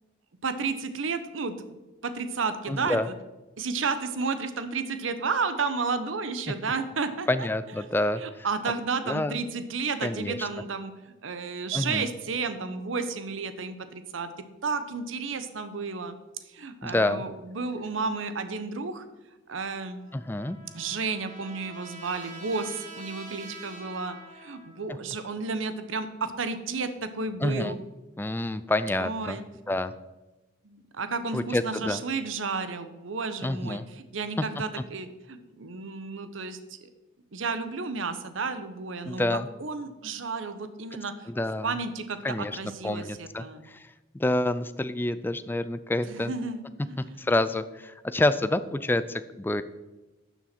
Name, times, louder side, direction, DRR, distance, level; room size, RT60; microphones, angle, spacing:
voice 1, 0.4-1.8 2.0-3.1 3.6-7.3 8.2-14.3 14.6-16.2 16.5-19.0 19.5-20.0 20.7-27.7 28.9-29.4 30.6-36.8 37.3-41.3 41.6-43.6 46.1-47.2, right 4 dB, 80° right, 10 dB, 0.8 m, -32 dB
voice 2, 2.7-3.1 6.5-6.6 7.3-8.5 9.1-9.4 10.0-10.5 11.7-12.1 16.8-17.2 20.1-20.6 27.4-27.7 28.2-29.4 29.7-29.9 31.3-32.0 33.4-33.8 39.0-39.5 41.3-41.7 42.2-42.6 42.8-46.3 47.2-49.6, left 1 dB, 10° left, 13 dB, 0.3 m, -28 dB
Trumpet, 19.8-24.9, right 1 dB, 40° right, 1.8 m, -46 dB
12.0 x 7.1 x 4.3 m, 1.1 s
head